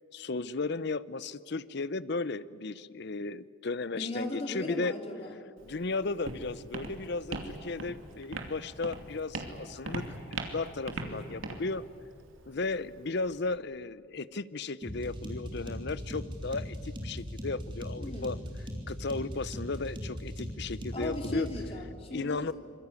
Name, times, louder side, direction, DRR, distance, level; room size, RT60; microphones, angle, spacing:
voice 1, 0.1-4.9 5.6-10.2 10.5-11.8 12.5-18.4 18.9-21.5 22.1-22.5, left 3 dB, 55° left, 18 dB, 0.7 m, -35 dB
voice 2, 4.0-5.4 11.0-11.5 18.0-18.4 20.9-22.5, left 1 dB, 25° left, 3 dB, 3.2 m, -37 dB
Walk footsteps, 5.6-13.5, right 2 dB, 70° right, 2.7 m, -41 dB
sound 1, 14.8-21.7, equal, 25° right, 3.7 m, -39 dB
26.0 x 21.5 x 9.7 m, 2.3 s
head